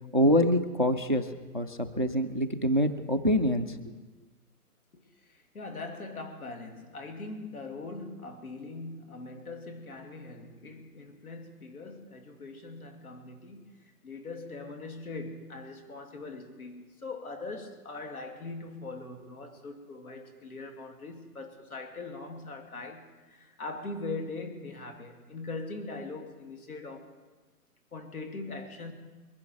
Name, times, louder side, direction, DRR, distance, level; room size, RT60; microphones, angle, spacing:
voice 1, 0.1-1.3 1.5-3.8, equal, 35° right, 0.4 m, -25 dB
voice 2, 5.3-27.1 27.9-28.9, left 3 dB, 65° left, 2.8 m, -41 dB
23.0 x 10.5 x 4.6 m
hypercardioid pair, 170°, 47 cm